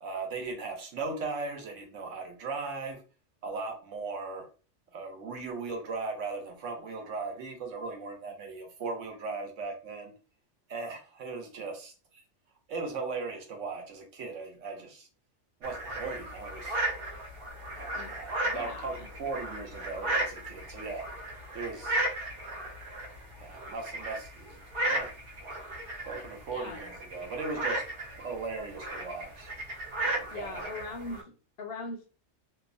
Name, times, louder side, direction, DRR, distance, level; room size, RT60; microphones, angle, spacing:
voice 1, 0.0-3.0 3.4-4.5 4.9-10.1 10.7-11.9 12.7-15.1 15.6-16.8 17.7-21.1 21.5-22.0 23.4-24.6 24.9-25.1 26.1-27.9 28.2-29.5 30.0-30.7, right 4 dB, 75° right, 1.0 m, -38 dB
sound 1, 15.6-31.2, right 1 dB, 55° right, 0.8 m, -35 dB
voice 2, 18.4-19.1 26.5-26.9 30.3-32.1, left 3 dB, 60° left, 0.7 m, -40 dB
2.8 x 2.0 x 2.5 m
omnidirectional pair, 1.3 m